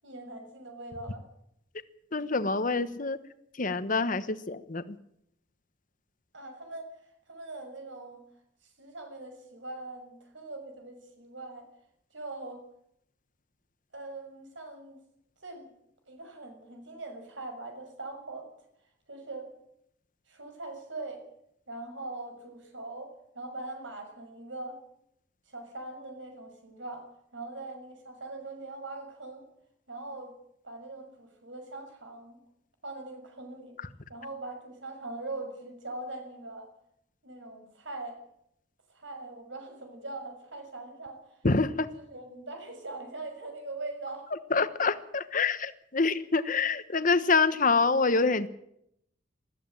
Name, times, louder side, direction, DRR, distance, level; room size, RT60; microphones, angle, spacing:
voice 1, 0.0-1.2 6.3-8.2 8.6-11.7 12.1-12.6 13.9-15.0 15.4-15.7 16.1-18.5 19.1-19.5 20.3-21.2 21.7-24.8 25.5-27.1 27.3-29.5 29.9-30.3 30.6-32.4 32.8-33.7 34.1-36.7 37.2-38.2 38.9-41.3 41.9-44.3, right 2 dB, 85° right, 5 dB, 6.4 m, -41 dB
voice 2, 2.1-3.2 3.6-4.8 41.4-41.9 44.5-48.5, left 4 dB, 45° left, 12 dB, 1.2 m, -26 dB
20.0 x 14.5 x 9.1 m, 0.75 s
head